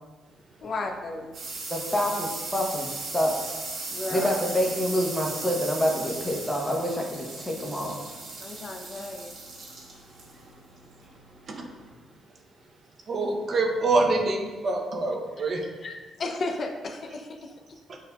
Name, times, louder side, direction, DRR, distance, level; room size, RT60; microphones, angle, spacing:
voice 1, 0.6-1.4 3.9-4.5 8.4-9.3 15.8-17.6, left 3 dB, 50° left, 4 dB, 0.4 m, -34 dB
sound 1, 0.6-11.9, right 3 dB, 70° right, 1.1 m, -38 dB
voice 2, 1.7-2.9 3.1-3.4 4.1-7.9, equal, 5° left, -1 dB, 0.8 m, -27 dB
voice 3, 13.1-15.7 17.9-18.0, right 2 dB, 50° right, 2 dB, 0.6 m, -26 dB
6.5 x 2.5 x 2.3 m, 1.3 s
cardioid pair, 90°, 0 cm